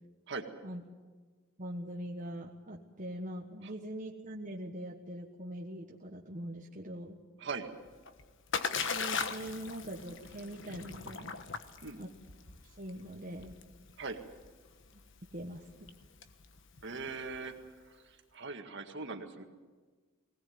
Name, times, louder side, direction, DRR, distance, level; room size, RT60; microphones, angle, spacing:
voice 1, 1.6-7.2 8.9-11.4 12.0-12.1 12.6-13.6 15.3-15.7, right 1 dB, 40° right, -1 dB, 1.4 m, -42 dB
Splash splatter, 7.8-17.7, left 5 dB, 60° left, 1.3 m, -40 dB
voice 2, 16.8-17.6 17.8-19.4, right 4 dB, 60° right, 5 dB, 1.9 m, -40 dB
20.0 x 18.0 x 9.5 m, 1.4 s
head